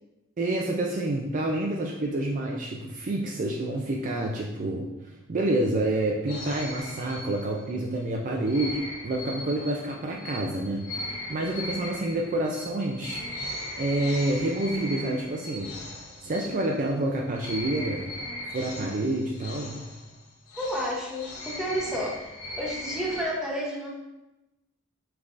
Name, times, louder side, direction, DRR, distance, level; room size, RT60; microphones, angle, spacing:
voice 1, 0.4-4.9 5.3-13.2 13.8-15.7 16.2-18.1 18.5-19.8, right 1 dB, 40° right, -1 dB, 0.4 m, -28 dB
sound 1, 6.3-7.8 8.5-17.0 17.3-23.3, left 1 dB, 85° left, 0.9 m, -38 dB
voice 2, 20.6-22.3 22.6-23.9, equal, 5° right, -5 dB, 0.8 m, -31 dB
5.2 x 3.5 x 2.5 m, 0.99 s
head